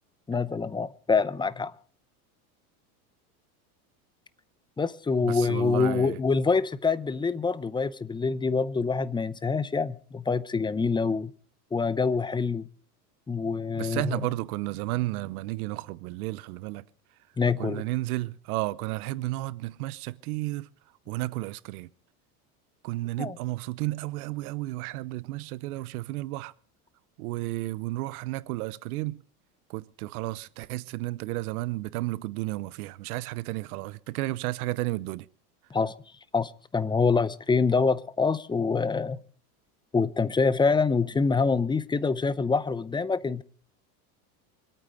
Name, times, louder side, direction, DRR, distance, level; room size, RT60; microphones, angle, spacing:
voice 1, 0.3-1.7 4.8-11.3 11.7-12.7 13.3-14.2 17.4-17.8 23.2-23.4 35.7-35.9 36.3-39.2 39.9-43.4, left 4 dB, 10° left, 0.6 m, -26 dB
voice 2, 5.2-6.2 13.8-16.8 17.6-20.7 21.1-21.9 22.8-26.5 27.2-29.2 29.7-35.3, right 18 dB, 75° right, 0.9 m, -32 dB
25.0 x 9.0 x 5.1 m
supercardioid pair, 110°, 45 cm